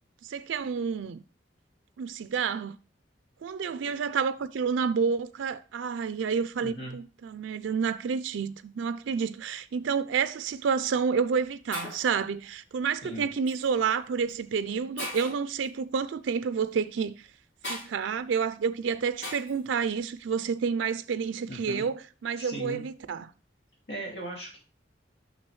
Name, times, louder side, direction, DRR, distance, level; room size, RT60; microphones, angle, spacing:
voice 1, 0.2-1.2 2.0-2.8 3.4-17.1 17.7-23.3, right 6 dB, 90° right, 0.4 m, -29 dB
voice 2, 6.6-7.0 13.0-13.3 21.5-21.9 22.4-22.8 23.9-24.6, right 1 dB, 65° left, 2.5 m, -38 dB
Shatter, 10.5-10.7 11.4-11.5 11.7-12.2 13.5-13.7 14.3-14.4 15.0-15.5 17.6-17.9 19.2-19.6, left 1 dB, 90° left, 3.3 m, -38 dB
6.1 x 6.1 x 3.1 m
head